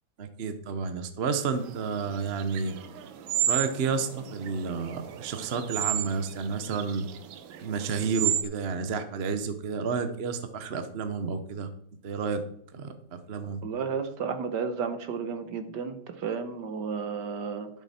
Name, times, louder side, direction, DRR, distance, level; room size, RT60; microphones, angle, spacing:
voice 1, 0.2-2.8 3.5-7.1 7.6-11.7 12.0-12.4 12.7-13.6, right 5 dB, 45° right, 9 dB, 0.8 m, -31 dB
sound 1, 1.6-8.4, right 11 dB, 80° right, 1.6 m, -33 dB
voice 2, 13.6-17.7, right 6 dB, 65° right, 9 dB, 1.5 m, -32 dB
12.0 x 7.1 x 4.3 m, 0.69 s
omnidirectional pair, 2.1 m